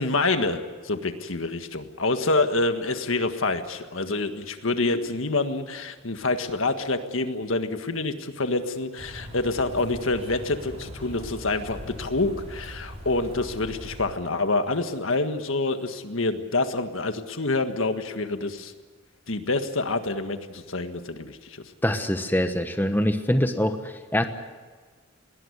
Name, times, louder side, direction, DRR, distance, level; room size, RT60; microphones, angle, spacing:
voice 1, 0.0-18.7 19.3-21.6, left 3 dB, 80° left, 8 dB, 1.7 m, -27 dB
sound 1, 9.0-14.1, equal, 30° right, 4.9 m, -40 dB
voice 2, 21.8-24.3, left 1 dB, 10° left, 7 dB, 1.1 m, -24 dB
21.0 x 18.5 x 9.7 m, 1.4 s
head